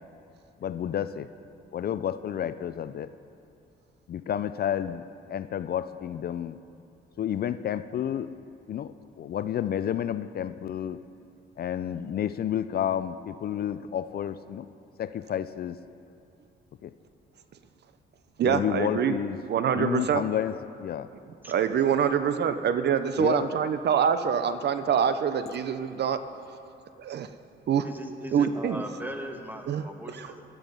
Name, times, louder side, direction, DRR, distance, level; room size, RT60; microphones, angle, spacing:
voice 1, 0.6-1.3 1.7-3.1 4.1-6.6 7.2-8.3 8.7-11.0 11.6-14.7 15.0-15.8 16.8-16.9 18.4-21.1 23.2-23.5 25.5-25.6, left 10 dB, 50° left, 13 dB, 0.5 m, -31 dB
voice 2, 18.4-19.1 19.5-20.2 21.5-26.2 27.0-27.3 27.7-27.9 28.3-28.8 29.7-29.8 30.1-30.3, right 8 dB, 60° right, 11 dB, 0.7 m, -25 dB
voice 3, 27.8-30.4, right 1 dB, 10° right, 4 dB, 1.5 m, -39 dB
15.0 x 11.5 x 5.4 m, 2.6 s
cardioid pair, 90°, 20 cm